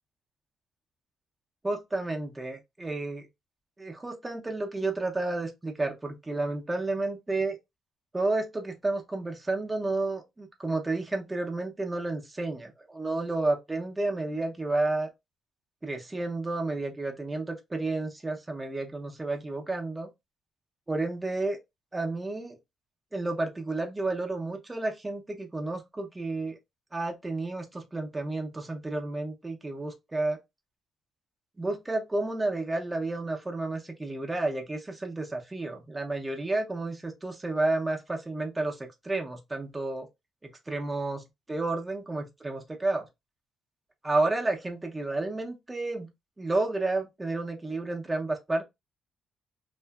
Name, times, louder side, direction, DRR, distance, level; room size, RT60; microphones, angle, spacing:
voice 1, 1.6-3.3 3.8-7.6 8.1-15.1 15.8-20.1 20.9-21.6 21.9-22.6 23.1-26.6 26.9-30.4 31.6-40.1 40.7-43.1 44.0-46.1 46.4-48.7, right 2 dB, 15° right, 0.6 m, -31 dB
2.7 x 2.4 x 2.3 m
cardioid pair, 120°, 0 cm